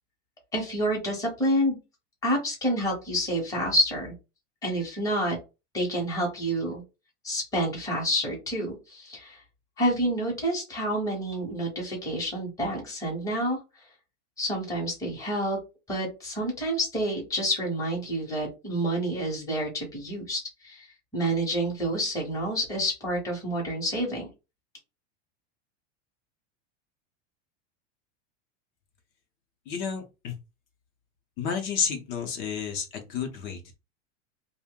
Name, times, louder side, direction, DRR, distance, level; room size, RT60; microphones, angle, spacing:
voice 1, 0.5-1.8 2.2-4.1 4.6-5.4 5.7-6.8 7.2-9.4 9.8-13.6 14.4-15.6 15.9-20.9 21.1-24.3, equal, 10° left, -1 dB, 0.8 m, -28 dB
voice 2, 29.7-30.4 31.4-33.8, left 6 dB, 35° left, 4 dB, 0.7 m, -31 dB
2.6 x 2.1 x 3.6 m, 0.27 s
supercardioid pair, 170°, 36 cm